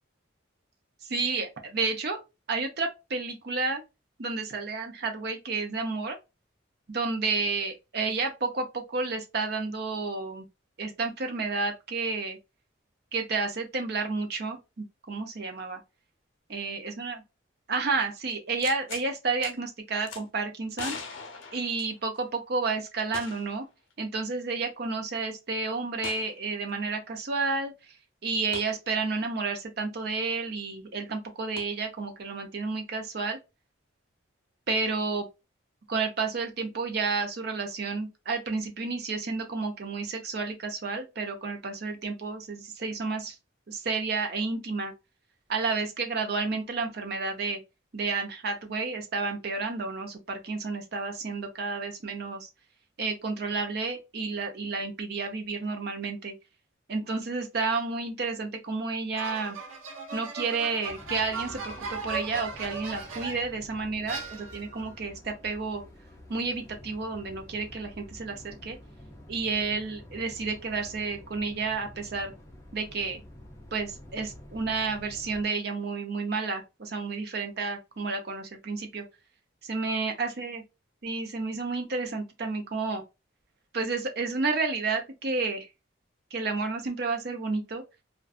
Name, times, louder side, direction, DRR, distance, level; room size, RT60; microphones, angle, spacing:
voice 1, 1.1-2.2 2.5-3.8 4.2-6.2 6.9-10.5 10.8-12.4 13.1-15.8 16.5-17.2 17.7-21.0 21.5-23.6 24.0-27.7 28.2-33.4 34.7-35.3 35.9-43.3 43.7-44.9 45.5-47.6 47.9-52.5 53.0-56.3 56.9-59.6 60.1-65.8 66.3-68.8 69.3-72.3 72.7-73.2 73.7-79.0 79.6-80.6 81.0-83.0 83.7-85.7 86.3-87.8, right 4 dB, 50° right, 0.6 m, -31 dB
sound 1, 18.6-19.1 19.4-19.5 20.1-20.2 20.7-22.3 23.1-23.6 23.9-24.0 26.0-26.3 28.5-28.7 31.6-31.7, left 5 dB, 75° left, 0.5 m, -40 dB
sound 2, 59.2-63.6 64.1-64.8, right 4 dB, 90° right, 0.7 m, -38 dB
sound 3, 60.8-75.4, left 1 dB, 15° left, 0.5 m, -49 dB
2.5 x 2.2 x 2.3 m
head